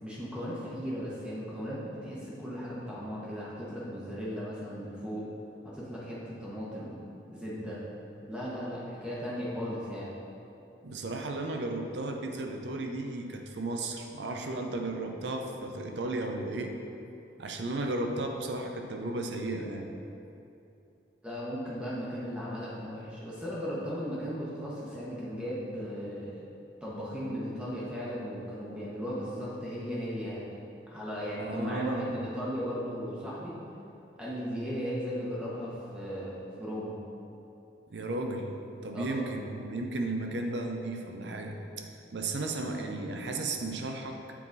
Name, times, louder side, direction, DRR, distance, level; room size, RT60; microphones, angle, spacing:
voice 1, 0.0-5.3 5.6-7.0 7.3-7.8 8.2-10.1 21.2-26.4 26.8-30.6 30.9-33.6 34.2-37.0 38.9-39.2, equal, 5° right, -8 dB, 0.9 m, -36 dB
voice 2, 10.8-16.7 17.4-20.0 31.4-32.1 37.9-38.5 38.8-41.8 42.1-44.2, right 2 dB, 80° right, 3 dB, 0.6 m, -34 dB
7.4 x 3.9 x 4.0 m, 2.8 s
head